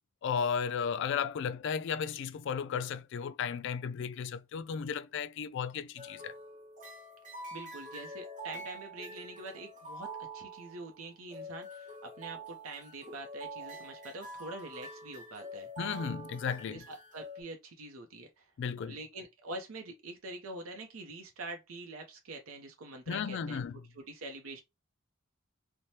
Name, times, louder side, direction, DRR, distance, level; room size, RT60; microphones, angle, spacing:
voice 1, 0.2-6.3 15.8-16.8 18.6-19.0 23.1-23.8, left 6 dB, 60° left, 0.3 m, -34 dB
sound 1, 6.0-17.4, right 1 dB, 40° right, 1.1 m, -46 dB
voice 2, 7.5-10.1 10.3-15.7 16.7-18.5 18.8-24.6, right 2 dB, 75° right, 0.6 m, -45 dB
3.2 x 2.1 x 2.7 m
head